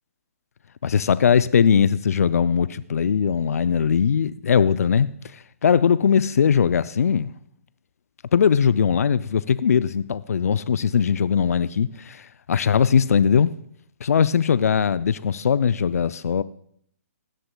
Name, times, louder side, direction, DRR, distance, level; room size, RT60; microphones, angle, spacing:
voice 1, 0.8-5.1 5.6-7.3 8.3-13.5 14.0-16.4, left 7 dB, 75° left, 0.4 m, -20 dB
16.5 x 11.0 x 2.2 m
hypercardioid pair, 135°, 8 cm